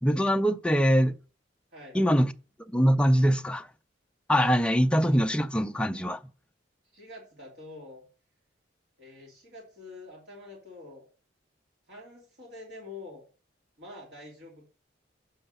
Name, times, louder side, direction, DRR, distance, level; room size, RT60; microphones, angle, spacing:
voice 1, 0.0-1.2 1.9-2.3 2.7-3.7 4.3-6.2, equal, 5° left, 0.4 m, -23 dB
voice 2, 6.9-8.0 9.0-11.1 11.9-13.2 13.8-14.6, left 2 dB, 65° right, 2.8 m, -46 dB
7.8 x 6.5 x 5.5 m
head